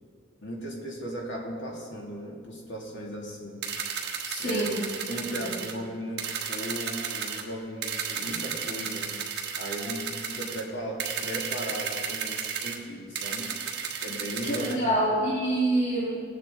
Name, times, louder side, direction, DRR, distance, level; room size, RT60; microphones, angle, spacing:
voice 1, 0.4-3.6 4.4-4.7 5.1-9.1 9.6-13.5 14.0-14.8, equal, 65° left, -2 dB, 2.4 m, -36 dB
sound 1, 3.6-5.7 6.2-7.4 7.8-10.6 11.0-12.8 13.2-14.8, right 7 dB, 55° right, 1.3 m, -33 dB
voice 2, 4.3-4.8 5.4-5.5 14.5-16.2, right 1 dB, 40° left, -7 dB, 1.9 m, -26 dB
19.0 x 8.9 x 3.9 m, 2.1 s
head